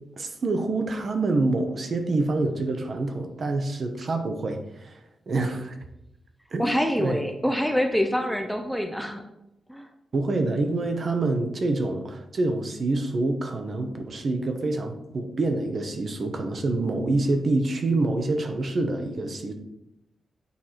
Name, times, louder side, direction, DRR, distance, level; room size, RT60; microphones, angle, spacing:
voice 1, 0.2-5.7 6.5-7.2 10.1-19.5, right 2 dB, 40° right, 6 dB, 0.8 m, -26 dB
voice 2, 6.6-9.2 9.7-9.9, equal, ahead, 4 dB, 0.6 m, -25 dB
8.3 x 4.7 x 4.3 m, 0.86 s
wide cardioid pair, 155°, 0 cm